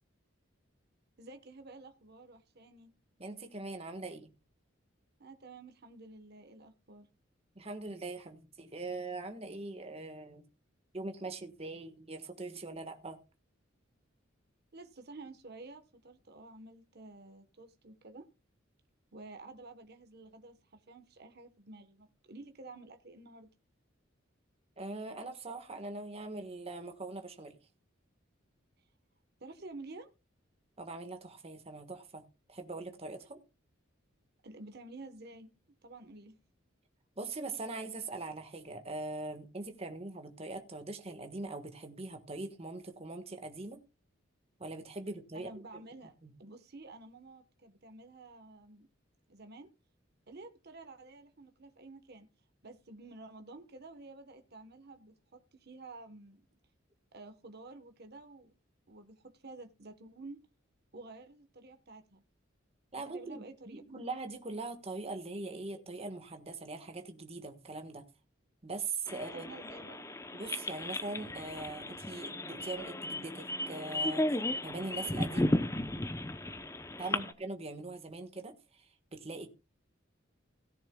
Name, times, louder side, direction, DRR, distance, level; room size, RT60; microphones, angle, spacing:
voice 1, 1.2-2.9 5.2-7.1 14.7-18.3 19.1-23.5 29.4-30.1 34.4-35.5 35.8-36.4 45.3-46.1 46.4-48.9 49.3-49.7 50.3-52.3 52.6-56.4 57.1-58.5 58.9-60.4 60.9-62.2 62.9-63.8 69.1-70.1 75.3-75.8 77.1-77.3, right 2 dB, 55° right, 1.2 m, -51 dB
voice 2, 3.2-4.3 7.5-10.4 10.9-13.2 24.8-27.6 30.8-32.2 32.5-33.4 37.2-43.8 44.6-45.5 46.2-46.3 62.9-68.0 68.6-69.5 70.3-74.3 74.6-75.6 77.0-79.5, right 3 dB, 30° right, 1.4 m, -41 dB
sound 1, 69.1-77.3, left 1 dB, 15° left, 0.7 m, -35 dB
17.0 x 10.5 x 2.3 m
head